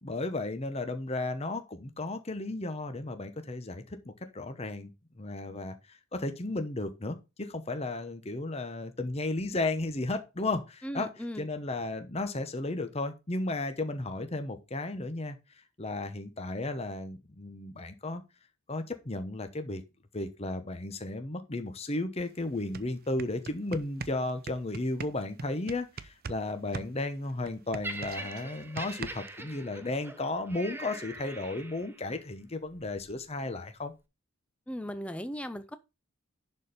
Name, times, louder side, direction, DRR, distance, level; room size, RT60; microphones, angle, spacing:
voice 1, 0.0-4.9 5.2-11.1 11.4-15.4 15.8-18.2 18.7-19.8 20.1-33.9, left 2 dB, 30° left, 0.9 m, -34 dB
voice 2, 10.8-11.5 34.7-35.8, equal, 5° left, 0.4 m, -37 dB
sound 1, 22.2-22.3 22.6-26.4 26.7-29.4, right 4 dB, 45° right, 0.5 m, -41 dB
Laughter, 27.8-32.1 32.9-33.1, right 2 dB, 10° right, 0.8 m, -43 dB
11.0 x 4.4 x 5.0 m
head